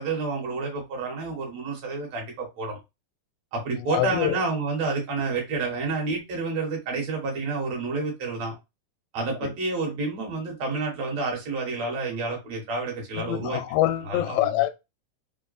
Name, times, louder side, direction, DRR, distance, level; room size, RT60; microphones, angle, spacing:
voice 1, 0.0-2.8 3.5-8.5 9.1-13.6 14.1-14.5, right 3 dB, 60° right, 2.0 m, -29 dB
voice 2, 3.9-4.4 9.4-9.5 13.2-14.7, left 14 dB, 85° left, 2.2 m, -25 dB
5.3 x 2.1 x 3.9 m
omnidirectional pair, 3.8 m